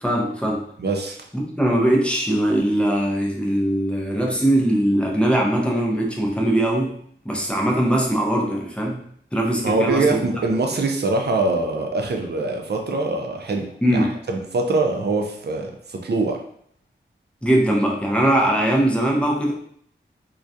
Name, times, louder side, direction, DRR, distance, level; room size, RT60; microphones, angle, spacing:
voice 1, 0.0-0.7 1.3-6.9 7.2-9.0 9.3-10.2 13.8-14.2 17.4-19.5, right 1 dB, 5° left, -1 dB, 0.5 m, -21 dB
voice 2, 0.8-1.2 9.6-16.4, right 3 dB, 55° right, 2 dB, 0.4 m, -23 dB
2.3 x 2.1 x 2.6 m, 0.64 s
wide cardioid pair, 75°, 21 cm